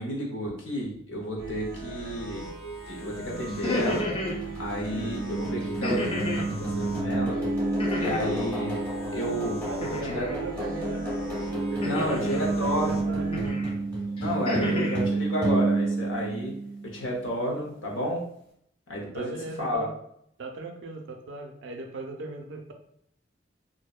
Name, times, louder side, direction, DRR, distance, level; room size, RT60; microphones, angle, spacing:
voice 1, 0.0-2.4 2.9-4.1 4.6-6.0 6.4-7.4 8.0-8.8 9.1-9.7 10.0-10.3 11.8-13.1 14.2-16.5 16.9-18.2 18.9-19.9, equal, 80° left, -1 dB, 0.7 m, -31 dB
sound 1, 1.4-13.5, right 3 dB, 55° left, 1.0 m, -39 dB
sound 2, 2.9-17.1, right 2 dB, 10° left, 1.0 m, -30 dB
sound 3, 3.5-4.4 5.8-6.5 7.8-8.5 9.8-10.4 11.8-12.5 13.3-13.7 14.2-15.0, left 2 dB, 30° left, 0.3 m, -31 dB
voice 2, 9.7-11.1 11.5-13.3 14.5-14.9 19.1-19.9 20.4-22.7, right 3 dB, 65° right, 4 dB, 0.4 m, -38 dB
2.6 x 2.1 x 2.3 m, 0.71 s
head